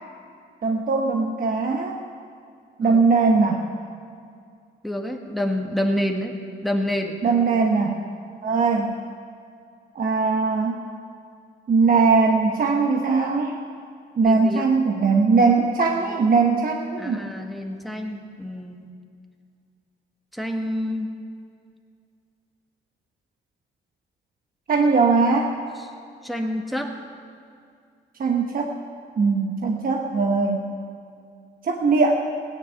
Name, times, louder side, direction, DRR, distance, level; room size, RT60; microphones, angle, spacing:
voice 1, 0.6-2.0 2.8-3.6 7.2-8.0 8.4-8.9 9.9-10.8 11.7-13.6 14.2-17.2 24.7-25.5 28.2-28.7 29.2-30.7 31.6-32.1, right 4 dB, 45° right, 2 dB, 1.1 m, -20 dB
voice 2, 4.8-6.3 6.6-7.2 14.2-14.7 17.0-18.9 20.3-21.1 26.2-27.0, left 1 dB, ahead, 2 dB, 1.6 m, -28 dB
16.5 x 10.0 x 6.8 m, 2.3 s
cardioid pair, 90°, 20 cm